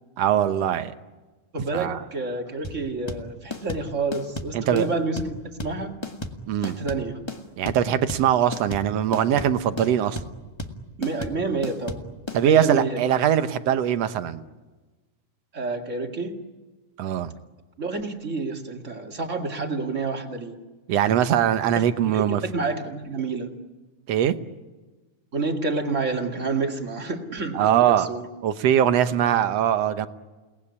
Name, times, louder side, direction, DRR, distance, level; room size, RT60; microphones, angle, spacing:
voice 1, 0.2-0.9 1.7-2.0 4.5-4.9 6.5-6.8 7.6-10.2 12.3-14.4 17.0-17.3 20.9-22.4 24.1-24.3 27.5-28.1 28.4-30.1, right 10 dB, 65° right, 10 dB, 1.9 m, -21 dB
voice 2, 1.5-6.0 6.6-7.2 11.0-12.0 12.4-13.0 15.5-16.4 17.8-20.6 21.8-23.5 25.3-28.2, right 3 dB, 25° right, 3 dB, 2.2 m, -29 dB
sound 1, 2.6-12.4, left 2 dB, 20° left, 0.7 m, -34 dB
30.0 x 19.0 x 9.8 m, 1.2 s
omnidirectional pair, 3.5 m